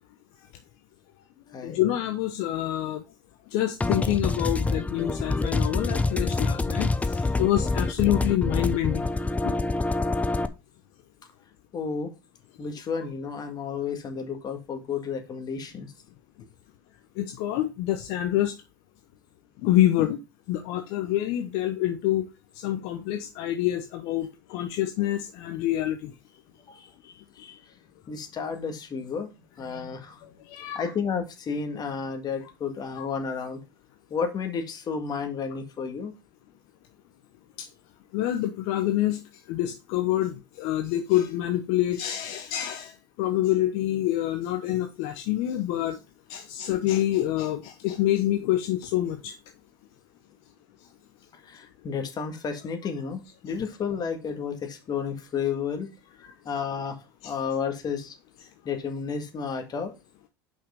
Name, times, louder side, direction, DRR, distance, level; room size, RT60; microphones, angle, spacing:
voice 1, 1.6-3.0 3.5-9.1 9.4-9.5 17.2-18.5 19.6-20.2 20.5-22.2 22.6-26.1 30.5-30.9 33.0-33.1 38.1-39.2 39.5-42.9 43.2-46.0 46.3-49.3 57.2-57.3, left 13 dB, 60° left, 0.9 m, -26 dB
sound 1, 3.8-10.5, left 3 dB, 10° left, 0.7 m, -26 dB
voice 2, 11.7-12.1 12.6-15.9 26.7-26.9 27.4-27.6 28.1-29.3 29.6-30.2 30.8-33.6 34.1-36.1 51.4-55.9 56.5-57.0 57.2-58.1 58.7-59.9, left 6 dB, 35° left, 1.9 m, -32 dB
5.6 x 5.6 x 5.1 m
hypercardioid pair, 80°, 11 cm